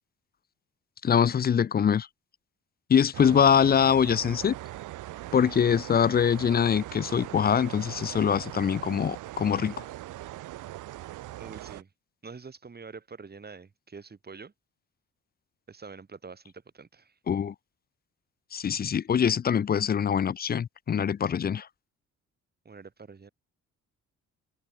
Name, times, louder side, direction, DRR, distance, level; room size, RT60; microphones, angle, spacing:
voice 1, 1.0-2.1 2.9-4.5 5.3-9.8 17.3-17.5 18.5-21.7, left 8 dB, 30° left, 0.5 m, -23 dB
sound 1, 3.1-11.8, right 16 dB, 85° right, 1.8 m, -40 dB
voice 2, 11.4-11.9 12.2-14.5 15.7-17.1 22.6-23.3, right 5 dB, 30° right, 5.0 m, -46 dB
open air
cardioid pair, 90°, 30 cm